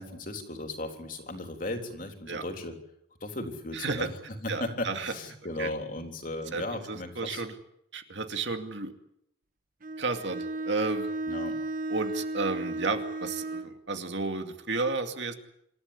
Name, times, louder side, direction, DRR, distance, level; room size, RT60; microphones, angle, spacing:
voice 1, 0.0-2.8 3.2-4.1 4.4-7.4 11.3-11.6, left 2 dB, 45° left, 4 dB, 3.6 m, -36 dB
voice 2, 3.7-4.1 4.5-5.1 5.6-5.7 6.5-7.6 7.9-8.9 10.0-11.1 11.9-15.3, right 3 dB, 70° right, 6 dB, 2.4 m, -32 dB
Bowed string instrument, 9.8-13.8, right 2 dB, 45° right, 1.4 m, -34 dB
26.5 x 14.0 x 10.0 m, 0.76 s
head